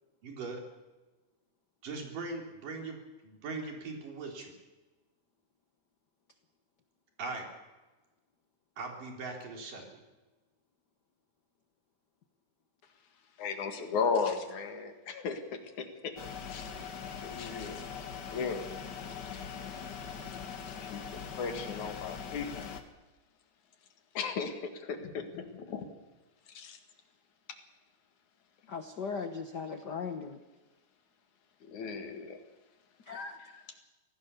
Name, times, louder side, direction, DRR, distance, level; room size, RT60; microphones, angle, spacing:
voice 1, 0.2-0.6 1.8-3.0 3.2-4.5 7.2-7.5 8.8-9.8, right 3 dB, 85° right, 2 dB, 5.1 m, -40 dB
voice 2, 13.4-16.1 16.5-16.7 17.2-17.9 18.3-18.7 20.7-22.7 24.1-25.9 26.5-26.8 31.6-32.4 33.4-33.6, left 5 dB, 65° left, 6 dB, 3.3 m, -36 dB
sound 1, 16.2-22.8, left 7 dB, 45° left, 1.5 m, -42 dB
voice 3, 28.7-30.4 33.1-33.4, left 5 dB, 85° left, 7 dB, 0.9 m, -38 dB
25.0 x 17.0 x 7.0 m, 1.2 s
omnidirectional pair, 3.7 m